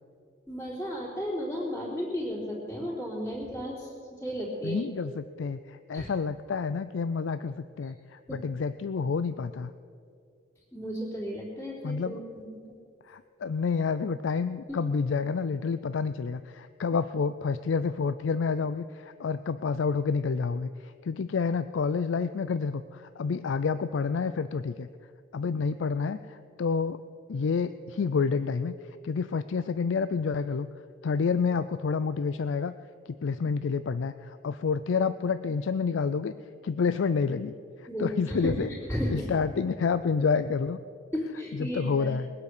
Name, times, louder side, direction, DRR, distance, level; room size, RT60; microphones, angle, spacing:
voice 1, 0.5-4.8 5.9-6.1 8.3-8.4 10.7-12.4 14.7-14.8 37.9-39.3 41.1-42.2, equal, 10° left, -6 dB, 3.4 m, -34 dB
voice 2, 4.6-9.7 11.8-12.2 13.1-24.9 25.3-27.0 27.3-28.7 29.0-30.7 31.0-32.7 33.1-36.3 36.6-38.7 39.1-40.8 41.5-42.3, left 5 dB, 85° left, 13 dB, 0.4 m, -29 dB
21.5 x 8.3 x 6.6 m, 2.3 s
head